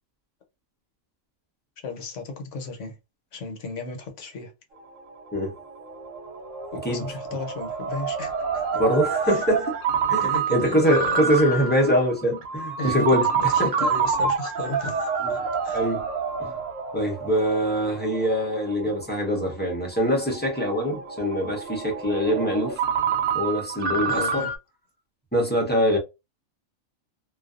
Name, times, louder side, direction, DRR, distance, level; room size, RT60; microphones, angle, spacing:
voice 1, 1.8-2.9 3.3-4.5 6.7-8.6 9.2-9.4 10.2-11.3 12.8-15.9 24.1-24.5, left 4 dB, 65° left, 1.1 m, -34 dB
Ringtone, 4.8-24.6, right 5 dB, 75° right, 0.9 m, -28 dB
voice 2, 8.7-9.8 10.1-13.3 13.6-13.7 15.2-15.5 15.7-16.1 16.4-16.6 16.9-22.8 23.3-24.5 25.3-26.0, equal, 10° left, 0.6 m, -23 dB
2.5 x 2.3 x 2.4 m
omnidirectional pair, 1.4 m